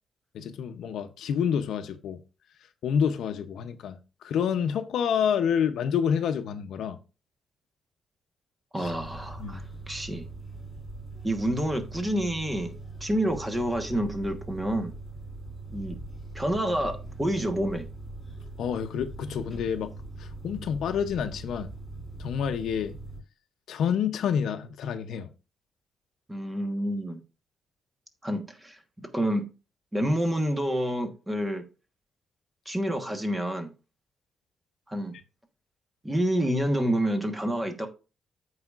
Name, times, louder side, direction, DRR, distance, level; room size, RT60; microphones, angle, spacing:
voice 1, 0.3-2.2 2.8-7.0 8.8-8.9 9.4-9.6 18.6-19.9 20.2-21.7 22.2-23.0 23.7-25.3, left 7 dB, 75° left, 0.7 m, -28 dB
voice 2, 8.7-10.3 11.2-12.7 13.0-14.9 15.7-16.0 16.3-17.9 26.3-27.2 28.2-28.8 29.1-29.5 29.9-31.6 32.7-33.7 34.9-35.1 36.0-37.9, equal, 10° right, 1.2 m, -28 dB
sound 1, 8.8-23.2, right 2 dB, 20° left, 2.7 m, -41 dB
14.0 x 4.8 x 2.5 m
cardioid pair, 155°, 0 cm